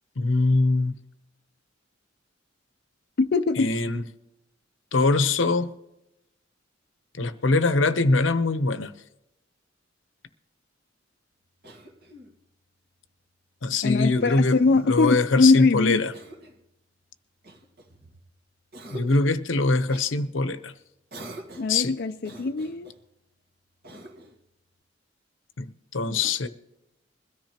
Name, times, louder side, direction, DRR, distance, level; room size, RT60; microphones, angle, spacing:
voice 1, 0.2-0.9 3.6-4.0 4.9-5.7 7.1-8.9 13.6-14.6 14.8-16.1 18.9-20.7 21.7-21.9 25.6-25.7 25.9-26.5, left 3 dB, 75° left, 0.8 m, -23 dB
voice 2, 3.2-3.7 13.8-16.0 21.6-22.9 26.1-26.3, left 3 dB, 55° left, 0.5 m, -22 dB
Cough, 11.6-12.4 13.7-14.9 16.1-16.6 17.4-18.3 18.7-19.4 19.9-20.1 21.1-21.8 22.2-23.0 23.8-24.4, right 1 dB, 55° right, 1.7 m, -45 dB
21.5 x 13.5 x 2.9 m
head